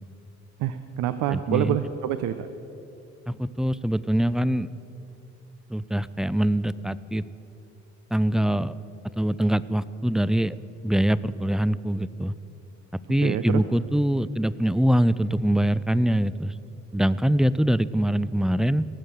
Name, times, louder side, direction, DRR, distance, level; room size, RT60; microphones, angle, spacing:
voice 1, 0.6-2.5 13.2-13.6, right 11 dB, 85° right, 10 dB, 0.6 m, -27 dB
voice 2, 1.3-1.8 3.3-4.7 5.7-7.2 8.1-8.7 9.2-10.6 10.8-12.3 13.1-16.5 16.9-18.8, right 1 dB, ahead, 17 dB, 0.3 m, -23 dB
18.0 x 6.5 x 9.1 m, 2.8 s
cardioid pair, 90°, 30 cm